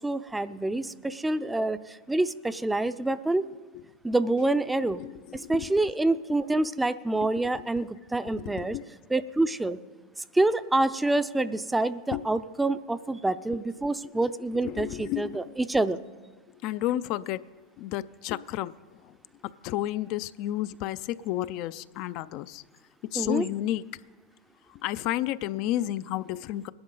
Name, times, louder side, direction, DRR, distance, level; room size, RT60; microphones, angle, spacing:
voice 1, 0.0-3.5 4.0-5.0 5.3-8.8 9.1-9.8 10.3-16.0 23.1-23.5, right 2 dB, 10° right, 0.5 m, -27 dB
voice 2, 14.6-15.3 16.6-17.4 17.8-18.7 19.6-22.6 23.1-23.8 24.8-26.7, left 14 dB, 55° left, 0.4 m, -31 dB
20.0 x 11.5 x 3.9 m
hypercardioid pair, 100°, 0 cm